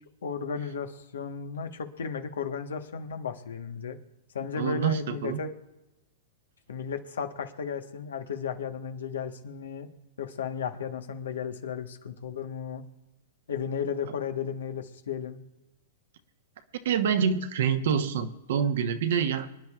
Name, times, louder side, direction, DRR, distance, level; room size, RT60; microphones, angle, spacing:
voice 1, 0.2-4.0 4.3-5.5 6.7-9.9 10.2-12.8 13.5-15.4, left 6 dB, 85° left, 7 dB, 1.3 m, -34 dB
voice 2, 4.6-5.4 16.8-19.5, right 7 dB, 70° right, 8 dB, 1.1 m, -26 dB
25.0 x 10.0 x 2.4 m, 0.99 s
hypercardioid pair, 125°, 0 cm